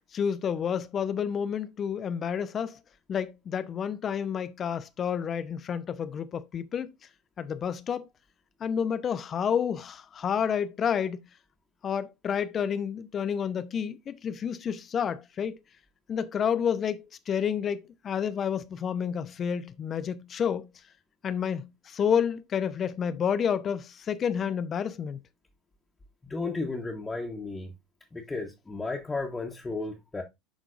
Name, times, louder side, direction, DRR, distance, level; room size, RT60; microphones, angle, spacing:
voice 1, 0.1-2.8 3.1-6.9 7.4-8.1 8.6-11.2 11.8-15.6 16.1-20.7 21.2-25.2, left 7 dB, 35° left, 0.7 m, -30 dB
voice 2, 26.2-27.7 28.1-30.2, left 3 dB, 15° left, 1.3 m, -34 dB
11.0 x 3.8 x 2.5 m
figure-of-eight pair, 75°, 0 cm